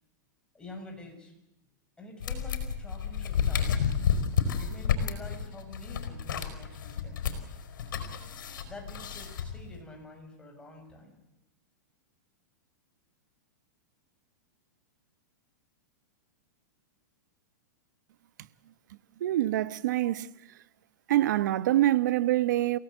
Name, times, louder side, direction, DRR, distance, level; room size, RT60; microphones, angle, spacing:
voice 1, 0.5-1.3 2.0-3.9 4.6-7.3 8.7-11.2, left 1 dB, 10° left, 7.0 m, -47 dB
sound 1, 2.2-9.8, left 7 dB, 80° left, 5.1 m, -31 dB
voice 2, 19.2-20.3 21.1-22.8, right 14 dB, 65° right, 1.3 m, -25 dB
29.0 x 17.5 x 8.1 m
hypercardioid pair, 140°, 10 cm